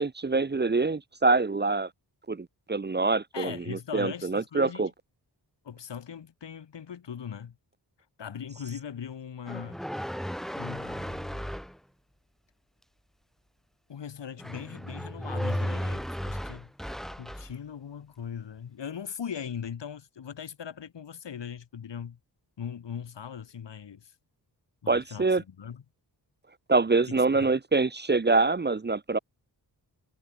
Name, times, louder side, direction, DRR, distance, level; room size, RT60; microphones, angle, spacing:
voice 1, 0.0-1.9 2.3-4.9 24.9-25.4 26.7-29.2, right 3 dB, 25° right, 1.0 m, -25 dB
voice 2, 3.3-4.8 5.6-7.6 8.2-9.8 10.6-11.5 13.9-22.2 22.6-24.1 24.8-25.8 27.1-27.5, left 8 dB, 85° left, 7.1 m, -40 dB
sound 1, 9.5-11.8 14.4-17.5, equal, ahead, 1.2 m, -34 dB
wide cardioid pair, 115°, 42 cm